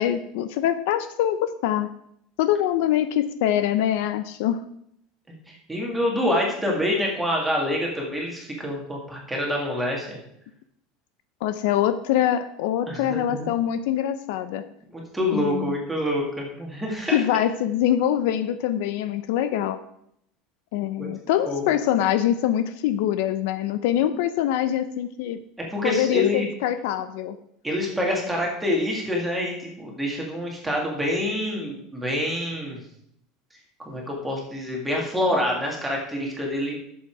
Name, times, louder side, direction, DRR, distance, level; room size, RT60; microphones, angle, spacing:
voice 1, 0.0-1.9 2.4-4.6 11.4-14.6 15.3-15.7 17.1-19.8 20.7-25.4 25.8-27.4, left 11 dB, 65° left, 11 dB, 0.6 m, -24 dB
voice 2, 5.3-10.2 12.9-13.5 14.9-17.2 21.0-21.1 21.5-21.7 25.7-26.5 27.6-32.8 33.8-36.8, left 1 dB, 5° right, -2 dB, 2.2 m, -26 dB
11.0 x 7.1 x 4.7 m, 0.73 s
cardioid pair, 175°, 0 cm